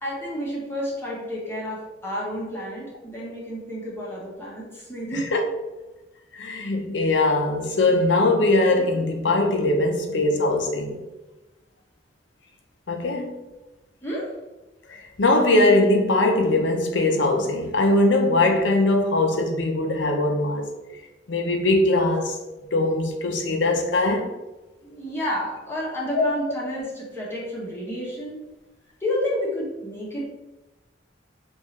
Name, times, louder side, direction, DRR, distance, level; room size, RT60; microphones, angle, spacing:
voice 1, 0.0-5.4 14.0-14.4 24.8-28.4 29.0-30.3, equal, 15° left, 1.1 m, -30 dB
voice 2, 6.3-11.0 12.9-13.3 15.2-20.7 21.3-22.4 22.7-24.3, left 2 dB, 85° left, 0.7 m, -21 dB
5.3 x 2.6 x 3.2 m
head